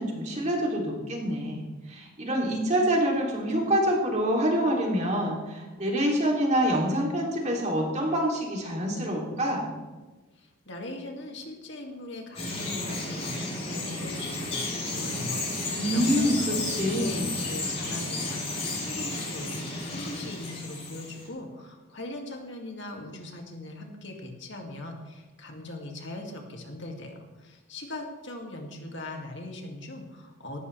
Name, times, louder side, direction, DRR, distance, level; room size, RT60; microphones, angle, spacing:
voice 1, 0.0-9.7 15.7-17.3, equal, 35° right, -1 dB, 3.1 m, -26 dB
voice 2, 10.3-30.6, left 1 dB, 60° left, 2 dB, 2.5 m, -40 dB
Bird vocalization bird call bird song, 12.4-21.3, left 2 dB, 30° left, 5.7 m, -32 dB
18.0 x 14.5 x 3.4 m, 1.2 s
head